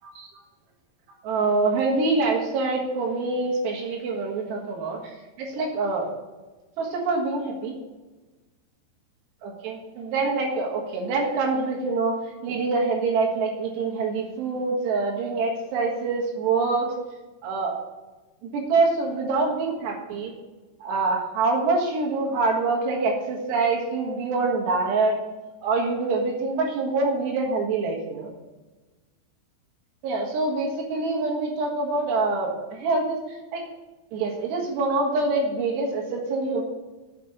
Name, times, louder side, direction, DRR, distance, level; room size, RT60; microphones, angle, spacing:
voice 1, 1.2-5.0 5.4-6.1 6.8-7.7 9.4-16.9 17.4-17.8 18.4-20.3 20.8-25.2 25.6-28.3 30.0-33.2 33.5-33.6 34.1-36.6, right 3 dB, 90° right, 0 dB, 3.7 m, -25 dB
8.5 x 5.2 x 7.0 m, 1.2 s
omnidirectional pair, 4.7 m